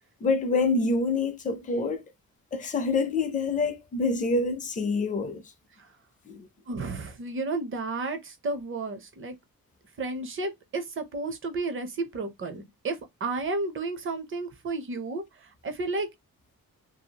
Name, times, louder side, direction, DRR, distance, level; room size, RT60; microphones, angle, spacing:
voice 1, 0.2-2.0 2.5-5.4 6.3-6.5, left 3 dB, 25° left, 0.5 m, -26 dB
voice 2, 6.7-9.4 10.0-16.1, right 3 dB, 35° right, 0.6 m, -32 dB
2.7 x 2.3 x 2.8 m
wide cardioid pair, 170°, 35 cm